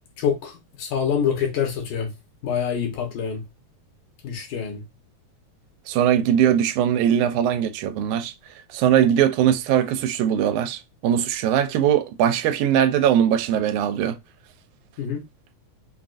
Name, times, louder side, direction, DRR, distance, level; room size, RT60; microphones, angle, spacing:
voice 1, 0.2-2.1 2.4-3.4 4.2-4.8 15.0-15.2, left 7 dB, 85° left, 2.6 m, -26 dB
voice 2, 5.9-8.3 8.7-14.2, right 9 dB, 85° right, 2.0 m, -20 dB
5.8 x 2.3 x 2.5 m
omnidirectional pair, 3.4 m